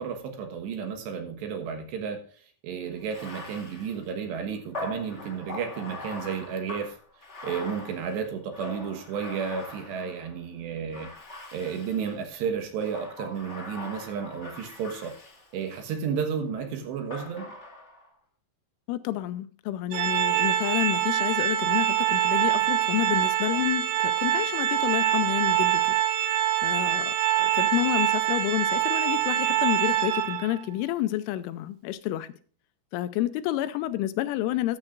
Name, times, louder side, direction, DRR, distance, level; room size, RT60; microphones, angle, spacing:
voice 1, 0.0-2.2 2.6-7.0 7.4-11.1 11.5-15.2 15.5-17.4, right 6 dB, 70° right, 3.1 m, -32 dB
Bathtub (filling or washing), 3.0-10.4 10.9-12.2 12.8-16.0 17.1-18.1, left 2 dB, 35° left, 1.1 m, -41 dB
voice 2, 18.9-32.3 32.9-34.8, left 14 dB, 85° left, 3.0 m, -29 dB
Organ, 19.9-30.6, right 12 dB, 85° right, 3.6 m, -25 dB
14.5 x 9.7 x 2.5 m
omnidirectional pair, 5.8 m